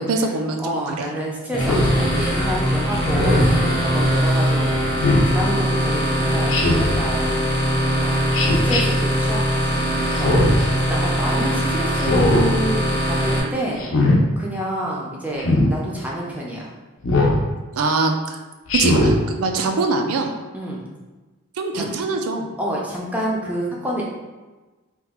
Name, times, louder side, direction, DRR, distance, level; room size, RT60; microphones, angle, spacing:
voice 1, 0.0-1.1 17.7-18.4 18.7-20.3 21.6-22.5, right 3 dB, 80° right, 4 dB, 0.4 m, -23 dB
voice 2, 0.6-7.4 8.0-13.9 14.4-16.7 20.5-20.8 21.7-21.9 22.6-24.1, right 1 dB, 5° right, -4 dB, 0.4 m, -28 dB
sound 1, 1.5-13.4, equal, 20° left, 0.8 m, -21 dB
Speech synthesizer, 1.6-1.9 3.0-3.5 5.0-5.3 6.5-7.0 8.3-8.8 10.1-10.6 11.9-12.5 13.8-14.2 15.4-15.7 17.0-17.4 18.7-19.2, left 1 dB, 60° left, 0.6 m, -19 dB
2.9 x 2.3 x 3.5 m, 1.2 s
head